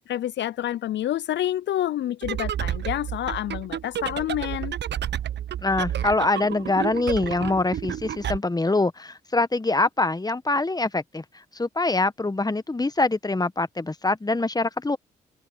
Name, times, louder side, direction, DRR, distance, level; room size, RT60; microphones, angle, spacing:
voice 1, 0.1-4.7, left 12 dB, 65° left, 0.7 m, -28 dB
sound 1, 2.2-8.4, right 10 dB, 60° right, 1.2 m, -31 dB
voice 2, 5.6-11.2 11.5-15.0, left 2 dB, 20° left, 1.5 m, -24 dB
open air
hypercardioid pair, 40°, 20 cm